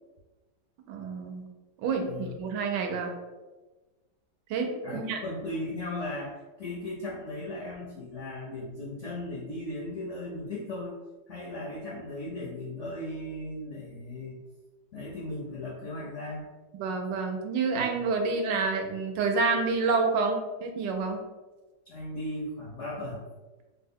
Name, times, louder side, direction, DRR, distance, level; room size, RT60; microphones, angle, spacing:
voice 1, 0.9-1.4 1.8-3.1 4.5-5.2 16.8-21.2, right 4 dB, 80° right, 4 dB, 1.2 m, -28 dB
voice 2, 2.0-2.4 4.8-11.0 11.3-14.4 14.9-16.5 18.0-18.1 21.9-23.2, left 1 dB, 70° left, -5 dB, 0.7 m, -37 dB
3.3 x 2.1 x 3.5 m, 1.2 s
omnidirectional pair, 2.0 m